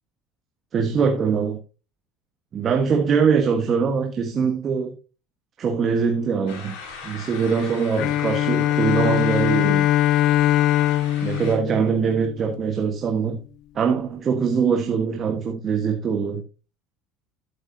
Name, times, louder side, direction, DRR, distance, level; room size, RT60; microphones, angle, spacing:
voice 1, 0.7-1.6 2.5-4.9 5.6-6.7 7.0-9.9 11.2-13.4 13.7-16.4, right 6 dB, 40° right, 1.4 m, -22 dB
sound 1, 6.5-11.6, left 5 dB, 85° left, 3.9 m, -39 dB
Bowed string instrument, 8.0-12.7, left 13 dB, 60° left, 0.5 m, -21 dB
11.5 x 9.4 x 2.8 m
supercardioid pair, 110°, 0 cm